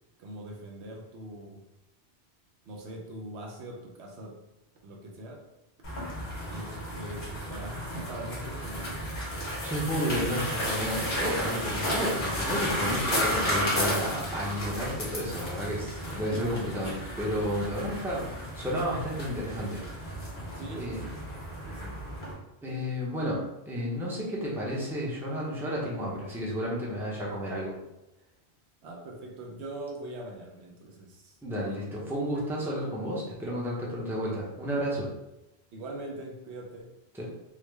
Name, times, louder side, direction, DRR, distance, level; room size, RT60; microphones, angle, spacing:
voice 1, 0.2-1.6 2.7-4.3 4.8-5.4 6.5-9.0 20.6-21.3 21.6-21.9 28.8-31.4 35.7-36.9, right 1 dB, 90° right, 0 dB, 1.0 m, -42 dB
sound 1, 5.8-22.3, equal, 70° left, 1.4 m, -33 dB
voice 2, 9.6-19.8 20.7-21.0 22.6-27.7 31.4-35.1 37.1-37.3, equal, 5° right, -5 dB, 0.6 m, -32 dB
3.7 x 2.1 x 3.2 m, 0.95 s
omnidirectional pair, 1.1 m